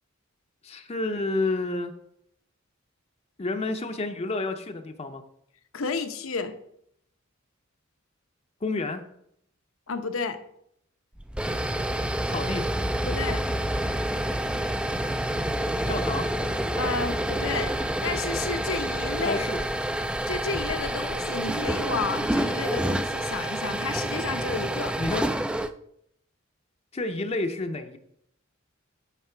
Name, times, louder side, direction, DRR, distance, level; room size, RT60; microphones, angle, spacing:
voice 1, 0.6-1.9 3.4-5.2 8.6-9.0 12.3-12.7 15.9-16.3 19.2-19.6 25.0-25.3 26.9-28.0, left 2 dB, 30° left, 6 dB, 0.6 m, -29 dB
voice 2, 5.7-6.5 9.9-10.4 13.0-13.4 13.7-13.8 16.8-17.8 18.0-19.4 20.3-25.0, left 4 dB, 75° left, 8 dB, 0.9 m, -31 dB
sound 1, 11.2-25.7, right 1 dB, 5° right, 0.3 m, -28 dB
9.3 x 5.9 x 4.5 m, 0.72 s
head